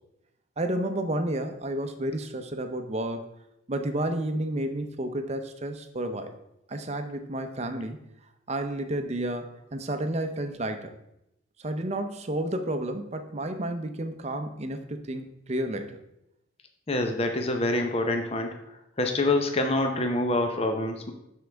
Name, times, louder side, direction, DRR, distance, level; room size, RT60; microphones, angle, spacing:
voice 1, 0.6-3.2 3.7-6.3 6.7-8.0 8.5-10.9 11.6-16.0, right 1 dB, 35° right, 7 dB, 0.7 m, -31 dB
voice 2, 16.9-18.6 19.0-21.1, left 2 dB, 30° left, 4 dB, 0.7 m, -26 dB
11.5 x 4.6 x 3.4 m, 0.84 s
head